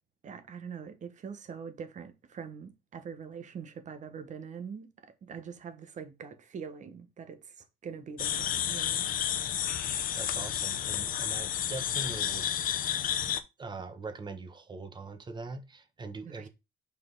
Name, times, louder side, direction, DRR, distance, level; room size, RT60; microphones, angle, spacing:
voice 1, 0.2-9.1 16.2-16.5, right 6 dB, 45° right, 1.4 m, -43 dB
sound 1, 8.2-13.4, left 10 dB, 55° left, 0.8 m, -31 dB
voice 2, 10.1-12.5 13.6-16.5, right 3 dB, 25° right, 1.2 m, -42 dB
5.7 x 4.3 x 4.0 m
cardioid pair, 110°, 17 cm